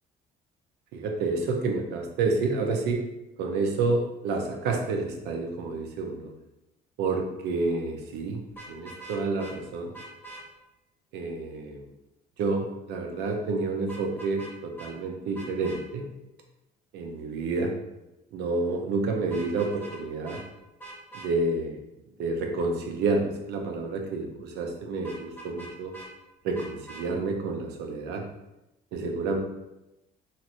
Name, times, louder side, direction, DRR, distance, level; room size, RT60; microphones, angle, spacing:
voice 1, 0.9-3.0 3.4-6.3 7.0-8.4 8.7-9.9 11.1-11.9 12.4-16.1 16.9-17.8 18.3-20.4 21.1-21.8 22.2-25.9 26.4-28.3 28.9-29.4, right 3 dB, 80° right, 3 dB, 0.6 m, -29 dB
Vehicle horn car horn honking, 8.5-9.5 9.9-10.4 13.9-14.5 14.8-14.9 15.3-15.8 19.2-20.0 20.2-20.4 20.8-21.3 25.0-26.1 26.5-27.0, right 2 dB, 10° left, 0.9 m, -43 dB
3.0 x 2.8 x 2.5 m, 0.93 s
cardioid pair, 110°, 17 cm